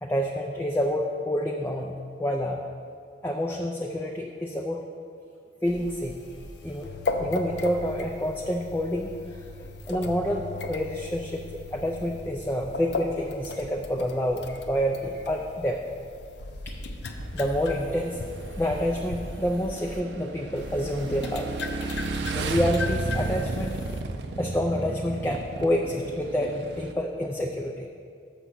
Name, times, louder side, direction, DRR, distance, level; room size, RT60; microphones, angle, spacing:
voice 1, 0.0-1.9 2.2-2.6 3.2-4.8 5.6-6.2 6.6-6.9 7.2-9.1 9.9-11.4 11.7-15.8 17.3-18.2 18.6-21.5 22.3-23.8 24.4-27.9, equal, 10° left, 1 dB, 0.4 m, -28 dB
sound 1, 5.6-20.0 20.6-24.0, left 2 dB, 65° left, 0.6 m, -37 dB
Motorcycle / Engine, 17.2-26.9, right 3 dB, 70° right, 0.5 m, -34 dB
6.8 x 6.1 x 5.8 m, 2.3 s
head